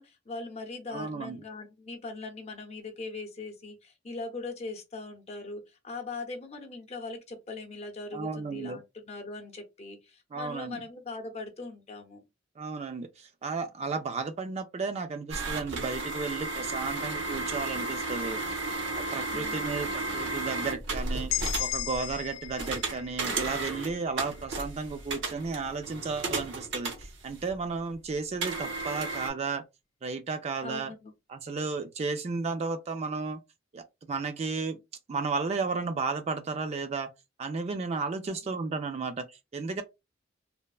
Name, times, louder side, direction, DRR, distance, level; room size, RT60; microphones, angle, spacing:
voice 1, 0.0-12.2 19.3-19.7 30.6-31.1 38.4-38.5, left 3 dB, 35° left, 0.6 m, -40 dB
voice 2, 0.9-1.4 8.1-8.8 10.3-10.8 12.6-18.6 18.9-29.6 30.0-30.9 31.3-33.4 33.7-34.8 35.1-37.1 37.4-39.8, right 4 dB, 35° right, 0.3 m, -33 dB
sound 1, 15.3-27.6 28.4-29.3, right 3 dB, 75° right, 0.8 m, -34 dB
sound 2, 21.3-25.1, left 14 dB, 80° left, 0.3 m, -37 dB
3.2 x 2.0 x 2.3 m
head